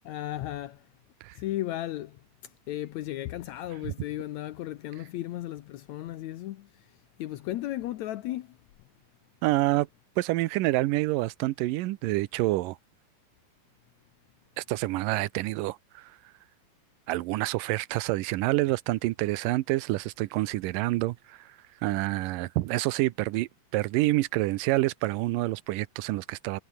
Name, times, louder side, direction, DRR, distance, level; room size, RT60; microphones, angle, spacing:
voice 1, 0.0-0.8 1.3-2.2 2.7-6.8 7.2-8.6, left 14 dB, 80° left, 1.6 m, -35 dB
voice 2, 9.4-9.9 10.2-12.8 14.6-16.1 17.1-21.6 21.8-26.6, right 18 dB, 75° right, 2.2 m, -27 dB
omnidirectional pair, 4.2 m